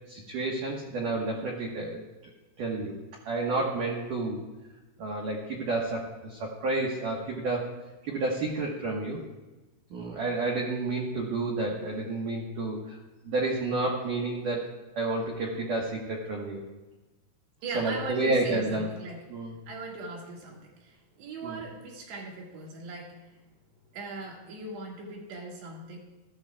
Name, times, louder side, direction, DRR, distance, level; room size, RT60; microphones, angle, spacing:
voice 1, 0.1-2.0 2.6-2.9 3.3-4.4 5.0-7.7 8.0-9.2 9.9-13.0 13.2-16.6 17.7-18.9 19.3-19.6 21.4-21.6, right 2 dB, 80° right, -2 dB, 1.8 m, -30 dB
voice 2, 17.6-19.2 19.7-23.4 23.9-26.0, right 3 dB, 65° right, -1 dB, 3.7 m, -39 dB
19.5 x 13.5 x 2.3 m, 1.1 s
omnidirectional pair, 5.9 m